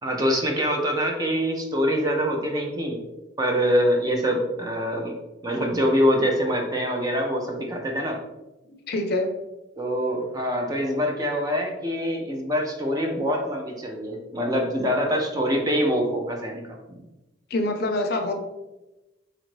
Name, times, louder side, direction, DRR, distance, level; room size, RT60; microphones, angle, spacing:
voice 1, 0.0-3.0 3.4-5.1 5.4-8.2 9.8-16.6 16.9-17.0, equal, 20° right, 1 dB, 0.5 m, -24 dB
voice 2, 8.9-9.3 17.5-18.3, left 2 dB, 50° left, 4 dB, 0.5 m, -25 dB
4.3 x 2.6 x 3.1 m, 1.0 s
head